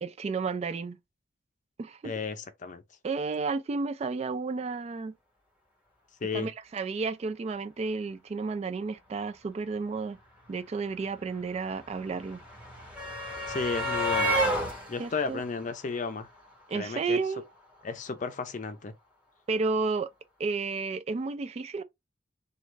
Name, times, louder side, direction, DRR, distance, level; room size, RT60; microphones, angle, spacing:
voice 1, 0.0-1.0 1.8-2.1 3.0-5.1 6.3-10.2 10.5-12.4 15.0-15.4 16.7-17.4 19.5-20.1 20.4-21.8, right 4 dB, 35° right, 0.3 m, -32 dB
voice 2, 2.0-2.8 6.2-6.5 13.5-14.4 14.9-16.3 16.7-17.2 17.8-18.9, left 4 dB, 45° left, 0.5 m, -33 dB
sound 1, 10.2-10.3 10.4-16.6 17.8-17.9 18.2-18.3, equal, 5° right, 1.8 m, -32 dB
3.1 x 2.3 x 3.2 m
head